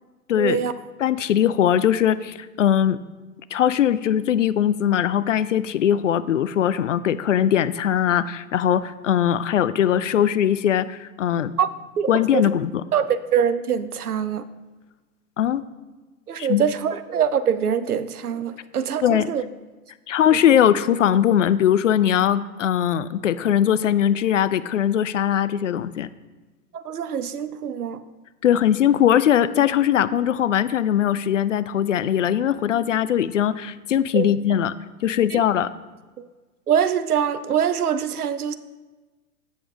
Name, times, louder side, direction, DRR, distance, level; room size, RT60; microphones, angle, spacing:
voice 1, 0.4-0.7 11.6-11.7 12.0-12.4 12.9-14.4 16.3-19.4 26.7-28.0 34.1-34.3 35.3-35.4 36.2-36.3 36.7-38.5, right 8 dB, 75° right, 13 dB, 0.7 m, -24 dB
voice 2, 1.0-3.0 3.5-11.5 12.1-12.7 15.4-15.6 16.4-16.6 19.0-19.3 20.1-26.1 28.4-34.7 35.0-35.7, left 10 dB, 55° left, 15 dB, 0.5 m, -20 dB
8.3 x 7.1 x 3.7 m, 1.2 s
figure-of-eight pair, 115°, 45 cm